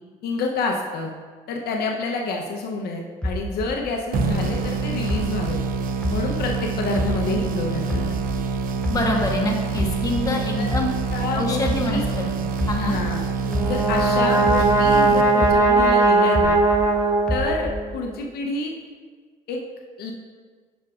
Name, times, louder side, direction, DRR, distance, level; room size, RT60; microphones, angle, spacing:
voice 1, 0.2-1.1 1.5-5.6 6.1-8.1 10.6-10.7 11.1-12.0 12.8-13.3 13.6-16.6 17.3-18.7 19.5-19.6 20.0-20.1, left 3 dB, 70° left, 1 dB, 0.7 m, -28 dB
sound 1, 3.2-6.6 7.0-9.4 9.8-14.1 14.5-16.9 17.3-18.0, equal, 5° left, 0.4 m, -29 dB
sound 2, 4.1-15.8, right 5 dB, 55° right, 0.6 m, -27 dB
voice 2, 8.9-10.9 11.3-12.0 12.4-13.0, left 1 dB, 20° left, 0 dB, 1.2 m, -25 dB
Brass instrument, 13.5-17.9, right 3 dB, 20° right, 0.8 m, -19 dB
9.3 x 6.0 x 2.4 m, 1.5 s
cardioid pair, 110°, 17 cm